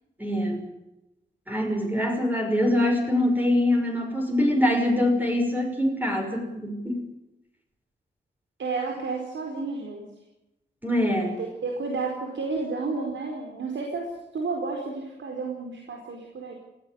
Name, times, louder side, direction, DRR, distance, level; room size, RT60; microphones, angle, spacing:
voice 1, 0.2-0.6 1.5-7.0 10.8-11.4, left 1 dB, 10° right, 2 dB, 5.7 m, -24 dB
voice 2, 8.6-10.0 11.2-16.5, right 4 dB, 85° right, 1 dB, 4.6 m, -31 dB
19.5 x 16.0 x 9.4 m, 0.91 s
wide cardioid pair, 110°, 19 cm